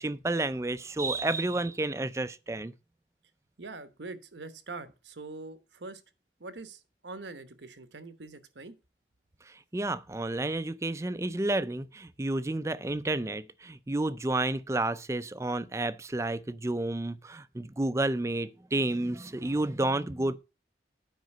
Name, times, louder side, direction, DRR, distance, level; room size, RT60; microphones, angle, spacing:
voice 1, 0.0-2.7 9.5-20.4, right 2 dB, 15° right, 0.4 m, -31 dB
voice 2, 3.6-6.0 6.4-8.8, right 3 dB, 85° right, 1.1 m, -43 dB
9.3 x 5.2 x 6.5 m
head